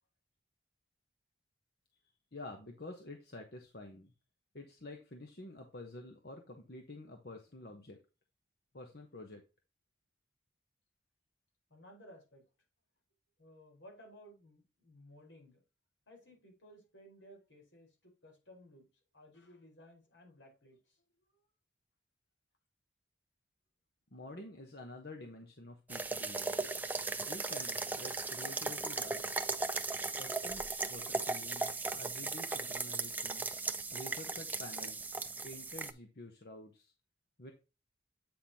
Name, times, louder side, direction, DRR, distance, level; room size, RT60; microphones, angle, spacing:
voice 1, 2.3-4.1 4.5-8.0 8.7-9.4 24.1-26.6 27.3-29.3 30.2-30.6 30.9-33.4 33.9-35.1 35.4-36.9 37.4-37.5, left 2 dB, 55° left, 1.1 m, -49 dB
voice 2, 11.7-12.4 13.4-15.6 16.1-18.9 19.1-20.8, equal, 80° left, 4.5 m, -57 dB
sound 1, 25.9-35.9, right 3 dB, 10° right, 0.5 m, -37 dB
8.8 x 5.8 x 2.8 m
head